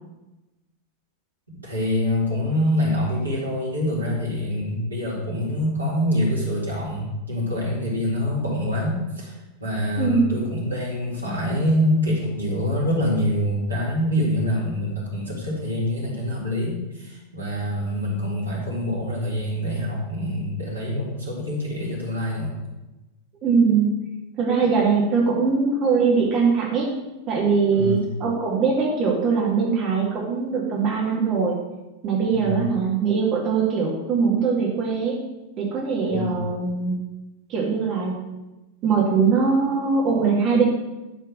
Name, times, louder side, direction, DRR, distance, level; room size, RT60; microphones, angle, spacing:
voice 1, 1.6-22.6 27.8-28.1 32.3-32.7 36.1-36.4, left 1 dB, 80° right, -5 dB, 3.7 m, -25 dB
voice 2, 10.0-10.4 23.4-23.9 24.4-26.9 27.3-31.6 32.0-35.2 35.6-37.1 37.5-38.3 38.8-40.6, right 5 dB, 35° right, -3 dB, 2.1 m, -21 dB
11.5 x 4.5 x 6.4 m, 1.0 s
figure-of-eight pair, 90°, 0 cm